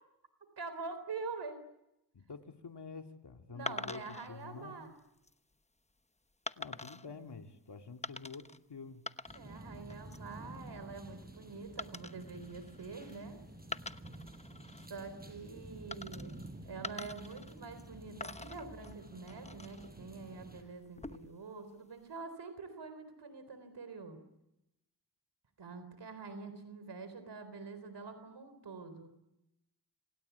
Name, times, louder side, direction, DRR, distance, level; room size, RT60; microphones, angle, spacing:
voice 1, 0.6-1.6 3.5-4.9 9.3-13.4 14.9-16.3 16.6-24.2 25.6-29.1, right 4 dB, 90° right, 10 dB, 3.9 m, -46 dB
voice 2, 2.1-4.8 6.6-9.0, left 5 dB, 80° left, 4 dB, 2.6 m, -48 dB
sound 1, 3.7-4.3 5.0-5.3 6.5-7.1 8.0-8.6 8.9-9.6 9.9-10.3 11.8-13.2 13.6-14.9 15.9-16.5 16.8-17.9 18.2-19.9 20.8-21.4, left 2 dB, 15° left, 1.0 m, -45 dB
sound 2, 9.3-20.6, right 1 dB, 20° right, 6.4 m, -51 dB
27.0 x 26.5 x 8.2 m, 0.87 s
wide cardioid pair, 60°, 40 cm